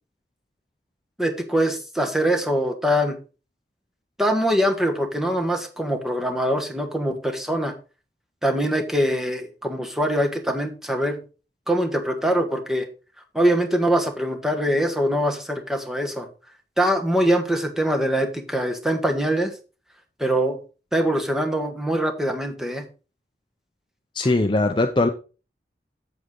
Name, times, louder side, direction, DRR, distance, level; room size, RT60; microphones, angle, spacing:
voice 1, 1.2-3.2 4.2-7.7 8.4-11.2 11.7-12.9 13.3-16.3 16.8-19.5 20.2-20.6 20.9-22.9 24.2-24.3, equal, 5° right, 3 dB, 1.3 m, -23 dB
voice 2, 24.1-25.1, left 2 dB, 25° left, 6 dB, 0.5 m, -20 dB
8.3 x 8.0 x 3.8 m, 0.34 s
head